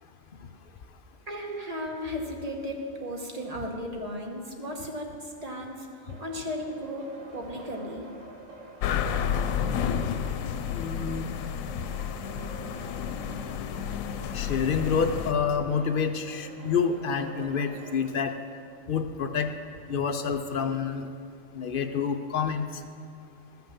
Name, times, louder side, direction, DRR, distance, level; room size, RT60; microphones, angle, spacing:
voice 1, 1.3-5.9 6.2-8.1, equal, 30° right, 1 dB, 1.2 m, -35 dB
sound 1, 6.1-18.1, right 2 dB, 70° right, 1.6 m, -47 dB
sound 2, 8.8-15.3, left 8 dB, 90° left, 1.0 m, -31 dB
voice 2, 10.7-11.3 13.4-13.5 14.3-18.4 18.9-19.5 19.9-21.1 21.5-22.8, left 6 dB, 55° left, 7 dB, 0.7 m, -28 dB
13.5 x 5.9 x 7.1 m, 2.3 s
omnidirectional pair, 1.4 m